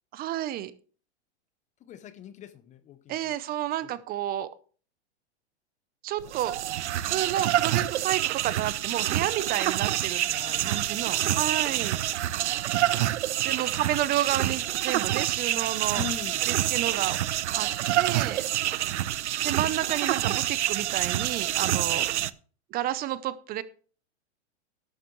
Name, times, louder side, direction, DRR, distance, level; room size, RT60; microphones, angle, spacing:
voice 1, 0.1-0.7 3.1-4.5 6.0-10.2 10.6-12.5 13.4-16.0 16.4-17.2 17.5-17.7 17.9-18.5 19.4-22.1 22.7-23.6, right 13 dB, 25° right, 0.7 m, -31 dB
voice 2, 1.8-3.4 3.8-3.9 10.3-12.2 15.9-16.4 18.6-19.0 21.9-22.1, left 8 dB, 20° left, 0.7 m, -43 dB
sound 1, 6.2-22.3, right 13 dB, 85° right, 0.7 m, -27 dB
12.5 x 11.5 x 3.2 m
hypercardioid pair, 135°, 34 cm